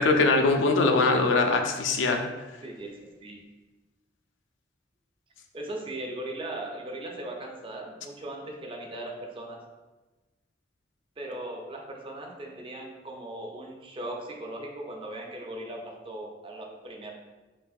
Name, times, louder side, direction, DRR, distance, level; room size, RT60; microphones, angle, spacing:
voice 1, 0.0-2.2, left 3 dB, 90° left, 5 dB, 0.4 m, -22 dB
voice 2, 2.6-3.4 5.5-9.6 11.2-17.1, right 1 dB, 30° right, 1 dB, 0.5 m, -38 dB
5.3 x 2.5 x 2.4 m, 1.2 s
head